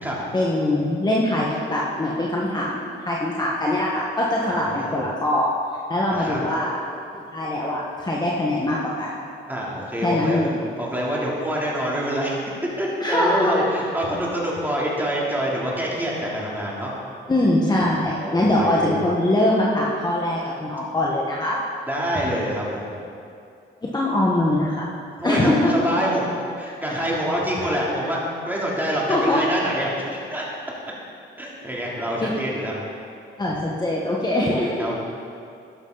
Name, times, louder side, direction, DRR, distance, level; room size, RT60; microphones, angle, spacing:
voice 1, 0.3-5.5 5.9-6.7 7.1-9.1 10.0-10.7 13.0-13.6 17.3-21.6 23.8-24.9 25.2-25.9 29.1-29.4 32.2-32.3 33.4-34.9, left 1 dB, 20° left, -4 dB, 1.5 m, -22 dB
voice 2, 4.4-5.0 6.1-6.4 9.5-12.4 12.8-16.9 18.2-19.0 21.9-22.9 25.2-28.2 28.5-30.4 31.4-32.8 34.8-34.9, equal, 10° right, -5 dB, 3.3 m, -26 dB
12.5 x 11.5 x 4.1 m, 2.4 s
cardioid pair, 90°, 20 cm